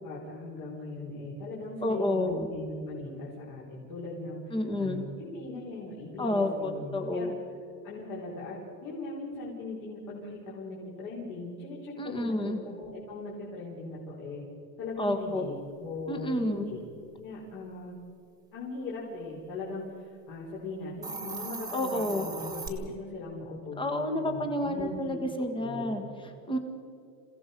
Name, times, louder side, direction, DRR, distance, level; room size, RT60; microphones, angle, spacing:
voice 1, 0.0-7.3 7.8-14.4 14.8-15.5 15.8-16.8 17.2-18.0 18.5-25.2 25.6-25.9, left 2 dB, 45° left, -5 dB, 5.0 m, -39 dB
voice 2, 1.8-2.5 4.5-5.0 6.2-7.3 12.0-12.6 15.0-15.5 16.1-16.7 21.7-22.3 23.8-26.6, left 1 dB, 10° left, 6 dB, 1.9 m, -30 dB
Hiss, 20.9-22.7, right 4 dB, 10° right, 2.2 m, -38 dB
28.5 x 16.5 x 5.5 m, 2.3 s
supercardioid pair, 150°, 48 cm